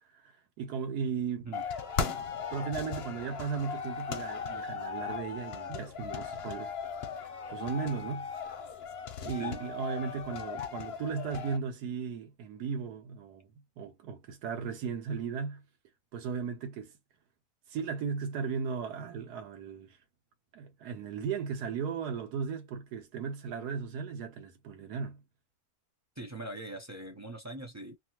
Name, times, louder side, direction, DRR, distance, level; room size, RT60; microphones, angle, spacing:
voice 1, 0.6-1.6 2.5-6.7 7.5-8.3 9.2-15.6 16.1-16.9 17.7-20.0 20.5-25.2, right 6 dB, 85° right, 1.4 m, -36 dB
sound 1, 1.5-11.6, left 6 dB, 60° left, 0.7 m, -37 dB
voice 2, 26.2-28.0, right 2 dB, 20° right, 0.4 m, -42 dB
2.8 x 2.4 x 2.8 m
omnidirectional pair, 1.6 m